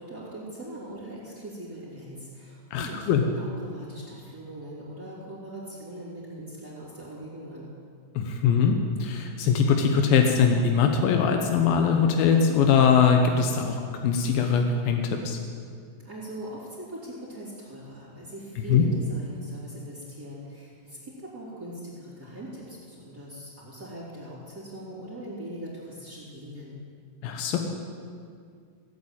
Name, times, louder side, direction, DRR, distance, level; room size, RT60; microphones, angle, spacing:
voice 1, 0.0-7.7 16.0-26.8, right 1 dB, 30° right, -9 dB, 3.6 m, -41 dB
voice 2, 2.7-3.2 8.2-15.4 18.7-18.8 27.2-27.6, left 6 dB, 90° left, 4 dB, 2.9 m, -22 dB
17.5 x 8.5 x 8.9 m, 2.2 s
omnidirectional pair, 4.1 m